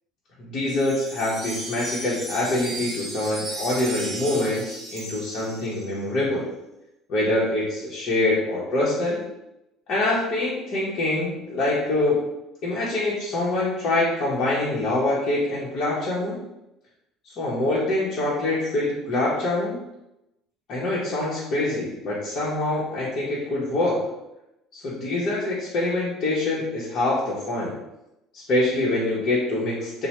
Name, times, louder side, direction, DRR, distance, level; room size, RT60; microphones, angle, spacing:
voice 1, 0.4-6.5 7.1-9.2 9.9-12.2 12.6-16.4 17.2-19.8 20.7-24.0 24.7-27.7 28.3-30.1, left 2 dB, 45° left, -8 dB, 0.7 m, -25 dB
sound 1, 0.7-6.1, right 2 dB, 20° right, 0.8 m, -36 dB
3.1 x 2.0 x 2.9 m, 0.89 s
cardioid pair, 140°, 0 cm